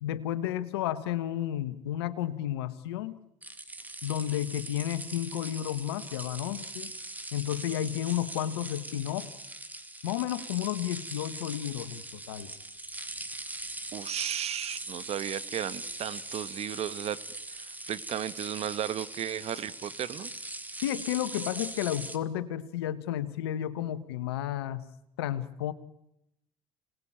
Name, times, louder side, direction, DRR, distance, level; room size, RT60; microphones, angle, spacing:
voice 1, 0.0-3.2 4.0-6.9 7.3-9.3 10.0-12.5 20.8-24.8 25.2-25.7, left 12 dB, 90° left, 14 dB, 1.4 m, -32 dB
sound 1, 3.4-22.2, right 2 dB, 15° right, 2.5 m, -41 dB
voice 2, 13.9-17.2 17.5-20.3, right 10 dB, 55° right, 15 dB, 1.4 m, -34 dB
27.0 x 19.5 x 8.9 m, 0.85 s
hypercardioid pair, 70°, 13 cm